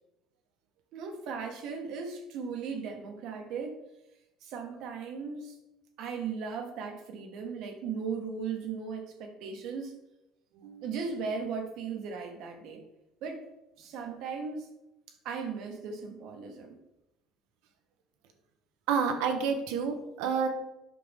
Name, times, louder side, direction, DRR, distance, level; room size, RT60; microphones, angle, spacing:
voice 1, 0.9-3.8 4.4-5.6 6.0-9.9 10.8-12.8 13.2-13.4 13.8-14.7 15.2-16.8, right 5 dB, 65° right, 3 dB, 1.6 m, -37 dB
voice 2, 18.9-20.5, right 6 dB, 85° right, 6 dB, 1.2 m, -29 dB
8.6 x 6.0 x 3.6 m, 0.89 s
cardioid pair, 115°, 0 cm